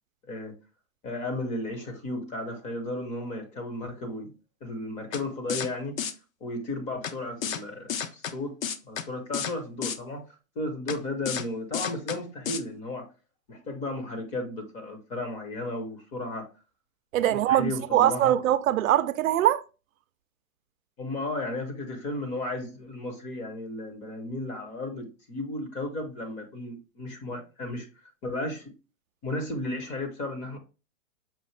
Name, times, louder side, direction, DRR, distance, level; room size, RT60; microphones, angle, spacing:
voice 1, 1.0-4.3 4.6-6.0 6.4-8.6 8.8-10.2 10.6-13.1 13.5-16.5 17.5-18.3 21.0-27.9 28.2-28.7 29.2-30.6, left 2 dB, 20° left, 0.5 m, -34 dB
sound 1, 5.1-5.2 5.5-5.7 6.0-6.1 7.0-7.1 7.4-7.6 7.9-8.3 8.6-9.0 9.3-9.5 9.8-10.0 10.9-11.0 11.3-11.4 11.7-12.2 12.5-12.6, left 8 dB, 75° left, 0.7 m, -31 dB
voice 2, 17.1-19.6, right 12 dB, 75° right, 0.5 m, -22 dB
5.6 x 2.5 x 3.1 m
hypercardioid pair, 140°, 41 cm